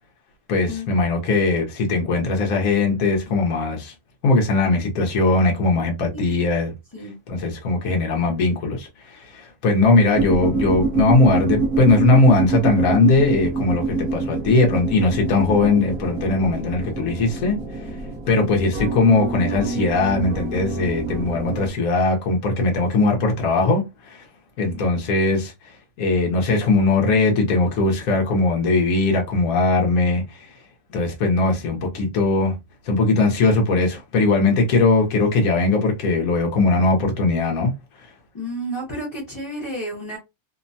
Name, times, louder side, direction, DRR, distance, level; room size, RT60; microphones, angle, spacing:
voice 1, 0.5-3.9 4.2-6.7 7.3-17.6 18.3-24.2 24.6-25.5 26.0-30.5 30.9-32.5 32.8-37.7, left 3 dB, 70° left, 1.2 m, -19 dB
sound 1, 10.1-21.7, right 3 dB, 50° right, 0.7 m, -26 dB
voice 2, 38.3-40.2, equal, 20° left, 0.6 m, -31 dB
3.0 x 2.1 x 2.6 m
omnidirectional pair, 1.5 m